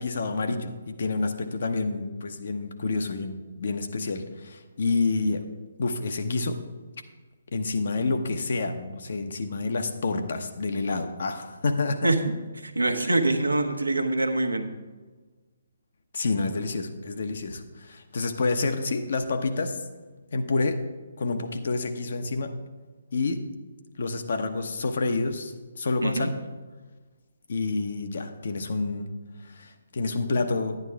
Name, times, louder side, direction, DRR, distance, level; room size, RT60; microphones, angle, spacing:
voice 1, 0.0-5.4 5.8-6.6 7.5-12.1 13.0-13.1 16.1-19.8 20.3-20.8 21.2-22.5 23.1-23.4 24.0-26.3 27.5-29.1 29.4-30.8, left 3 dB, 55° left, 7 dB, 0.9 m, -28 dB
voice 2, 12.6-14.7 26.0-26.3, right 2 dB, 80° right, 6 dB, 1.0 m, -24 dB
11.0 x 9.3 x 3.5 m, 1.3 s
figure-of-eight pair, 135°, 0 cm